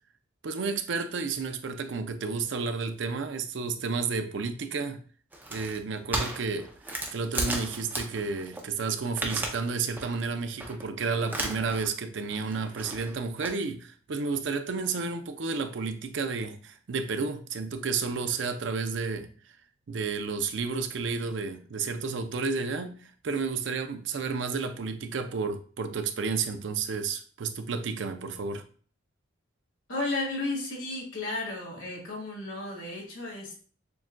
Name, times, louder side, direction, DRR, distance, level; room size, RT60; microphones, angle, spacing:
voice 1, 0.4-5.0 5.5-6.7 7.1-19.3 19.9-28.6, right 4 dB, 70° right, 0.5 m, -31 dB
sound 1, 5.3-8.6 8.9-9.7 10.0-10.2 10.6-10.8 11.3-11.9 12.2-13.5, right 1 dB, 10° right, 0.5 m, -35 dB
voice 2, 29.9-33.6, left 2 dB, 85° left, 1.8 m, -33 dB
6.9 x 2.4 x 2.2 m
head